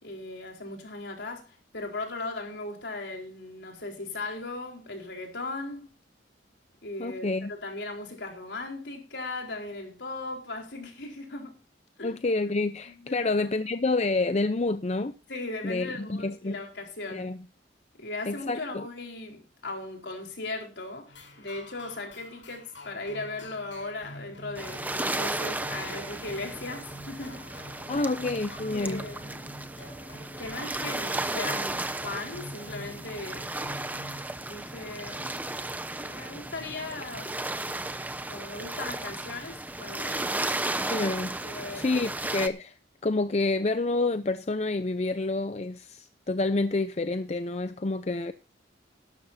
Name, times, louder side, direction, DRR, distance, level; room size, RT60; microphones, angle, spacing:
voice 1, 0.0-5.9 6.8-11.6 12.0-12.1 12.9-13.7 15.3-17.3 18.0-27.5 27.9-28.1 28.7-29.5 30.4-33.5 34.4-35.3 36.0-37.4 38.3-40.5 41.4-42.0, left 2 dB, 65° left, 4.3 m, -38 dB
voice 2, 7.0-7.5 12.0-15.2 15.6-16.6 17.1-17.4 18.3-18.9 27.9-29.0 40.9-41.4 41.7-48.3, left 2 dB, 35° left, 0.6 m, -28 dB
sound 1, 21.1-34.2, equal, 85° left, 6.6 m, -46 dB
sound 2, 24.5-42.5, right 2 dB, 10° right, 0.8 m, -34 dB
17.5 x 12.5 x 2.7 m
head